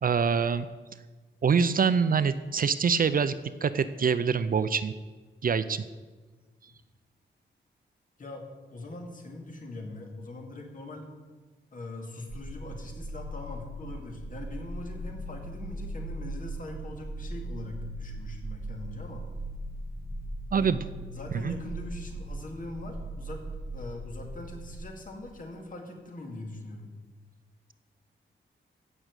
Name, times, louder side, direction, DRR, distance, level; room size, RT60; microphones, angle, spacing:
voice 1, 0.0-0.7 1.4-3.4 3.6-4.9 5.4-5.8 20.5-20.8 21.4-21.5, right 6 dB, 45° right, 13 dB, 0.5 m, -25 dB
voice 2, 8.2-11.1 11.7-19.3 20.5-20.7 21.1-23.4 23.7-26.9, left 2 dB, 45° left, 2 dB, 2.2 m, -42 dB
sound 1, 12.3-24.8, right 1 dB, 20° right, 2.6 m, -39 dB
15.5 x 6.1 x 8.0 m, 1.3 s
wide cardioid pair, 180°, 20 cm